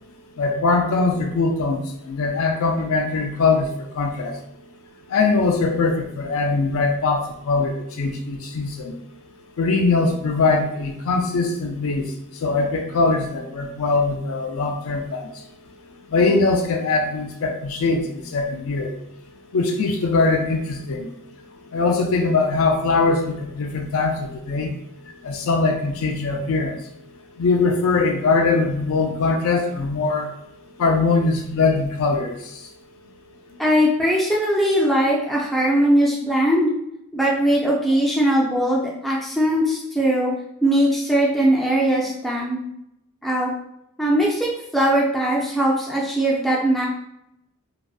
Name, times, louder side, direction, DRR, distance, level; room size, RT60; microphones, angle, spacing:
voice 1, 0.4-4.4 5.1-9.0 9.6-19.0 19.5-24.7 25.0-26.9 27.3-32.7 33.5-33.6, left 3 dB, 70° left, 3 dB, 0.4 m, -22 dB
voice 2, 33.6-36.7 37.1-40.3 40.6-42.6 43.2-43.5 44.0-46.9, right 1 dB, ahead, -5 dB, 0.4 m, -20 dB
2.6 x 2.1 x 2.3 m, 0.80 s
head